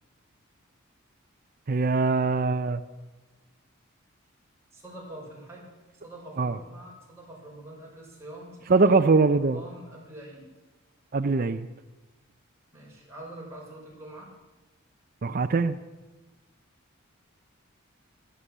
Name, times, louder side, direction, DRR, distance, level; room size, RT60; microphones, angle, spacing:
voice 1, 1.7-2.8 6.4-6.6 8.7-9.6 11.1-11.7 15.2-15.8, right 4 dB, 40° right, 7 dB, 0.5 m, -22 dB
voice 2, 4.7-5.7 6.0-10.5 12.7-14.3, right 1 dB, 15° right, -4 dB, 5.2 m, -44 dB
15.5 x 12.5 x 7.3 m, 1.2 s
head